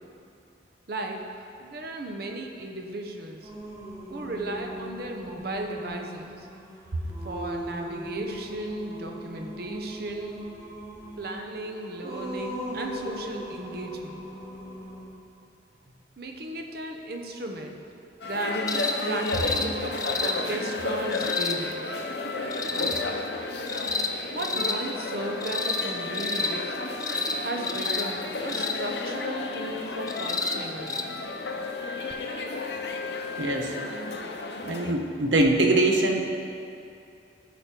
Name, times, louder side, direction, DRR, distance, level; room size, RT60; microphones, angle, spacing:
voice 1, 0.9-1.3 1.6-3.5 4.1-6.5 7.2-10.4 11.2-14.2 16.2-17.8 18.2-18.7 19.0-21.8 22.7-23.0 24.3-26.6 27.4-31.3, right 2 dB, 55° right, 2 dB, 0.9 m, -35 dB
Singing, 3.4-15.1, equal, 15° right, 1.5 m, -39 dB
sound 1, 18.2-34.9, left 3 dB, 65° left, 0.7 m, -33 dB
sound 2, 18.7-19.0 19.3-19.7 20.0-20.3 21.1-21.6 22.5-23.0 23.7-24.1 24.4-24.8 25.4-25.9 26.1-26.5 27.0-27.4 27.6-28.0 28.5-28.8 30.1-30.6 30.9-31.0 32.1-32.2, left 4 dB, 20° left, 0.5 m, -29 dB
voice 2, 33.4-33.7 34.6-36.2, right 2 dB, 85° right, 2 dB, 1.0 m, -22 dB
13.5 x 5.3 x 4.5 m, 2.5 s
head